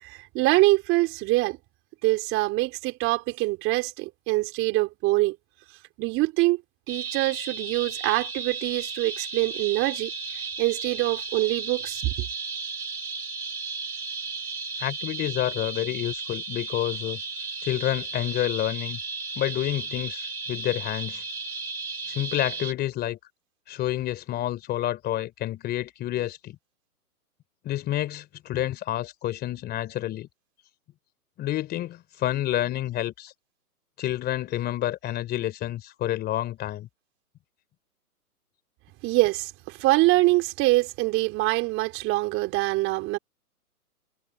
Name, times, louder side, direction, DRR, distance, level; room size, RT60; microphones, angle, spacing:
voice 1, 0.0-1.6 2.0-5.4 6.0-6.6 6.9-10.1 10.6-12.1 39.0-43.2, right 20 dB, 30° right, 4.1 m, -24 dB
sound 1, 6.9-22.7, right 4 dB, 80° right, 6.6 m, -34 dB
voice 2, 14.8-17.2 17.6-19.0 19.3-21.2 22.1-23.2 23.7-26.6 27.6-30.3 31.4-33.3 34.0-36.9, left 13 dB, 20° left, 3.2 m, -29 dB
hypercardioid pair, 135°, 45 cm